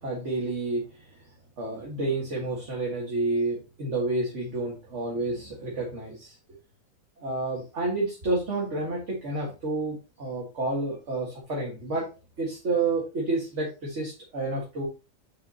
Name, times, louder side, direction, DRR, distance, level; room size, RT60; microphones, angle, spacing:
voice 1, 0.0-1.1 1.6-6.4 7.2-12.1 12.4-14.9, right 2 dB, 55° right, -3 dB, 2.1 m, -30 dB
6.9 x 6.2 x 2.9 m, 0.29 s
omnidirectional pair, 1.5 m